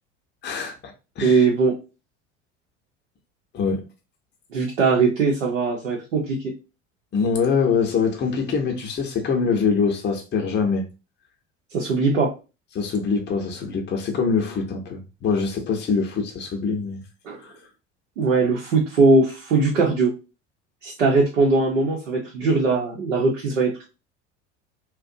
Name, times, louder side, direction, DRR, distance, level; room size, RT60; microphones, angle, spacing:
voice 1, 0.4-1.5 3.5-3.9 7.1-10.8 12.7-17.0 17.4-17.5, left 5 dB, 30° left, 0.7 m, -24 dB
voice 2, 1.2-1.8 4.5-6.5 11.7-12.3 17.2-17.4 18.2-20.1 20.8-23.9, right 3 dB, 80° right, 0.8 m, -20 dB
2.5 x 2.2 x 2.6 m
figure-of-eight pair, 70°, 37 cm